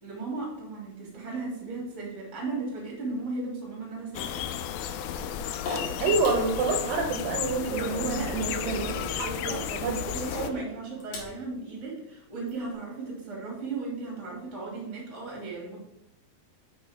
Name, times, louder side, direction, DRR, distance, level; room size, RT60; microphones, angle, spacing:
voice 1, 0.0-4.5 7.6-9.7 10.1-15.8, right 3 dB, 20° right, -2 dB, 2.6 m, -36 dB
sound 1, 4.1-10.5, left 9 dB, 80° left, 2.3 m, -33 dB
sound 2, 5.4-6.5 8.6-11.4 12.5-12.6, left 3 dB, 55° left, 3.0 m, -39 dB
voice 2, 6.0-8.9 9.2-10.0, right 4 dB, 70° right, 1 dB, 2.4 m, -28 dB
6.8 x 6.0 x 5.2 m, 0.84 s
omnidirectional pair, 4.4 m